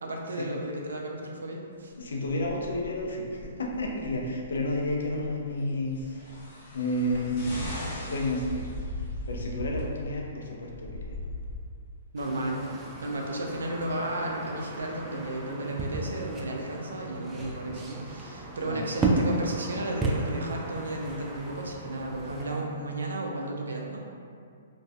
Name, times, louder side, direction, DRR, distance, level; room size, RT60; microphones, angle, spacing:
voice 1, 0.0-1.9 12.1-24.0, right 1 dB, 85° right, 0 dB, 0.4 m, -33 dB
voice 2, 2.0-6.2 6.7-7.7 8.0-8.6 9.3-11.2 18.6-18.9, left 1 dB, 80° left, -1 dB, 0.4 m, -31 dB
sound 1, 2.0-5.3 5.9-6.0 6.3-10.3 10.6-11.6, left 2 dB, 45° right, 0.9 m, -40 dB
sound 2, 5.9-9.3 10.2-10.3, left 1 dB, 45° left, 0.7 m, -40 dB
sound 3, 12.2-22.6, right 2 dB, 15° right, 0.3 m, -34 dB
2.5 x 2.3 x 2.2 m, 2.3 s
hypercardioid pair, 135°, 0 cm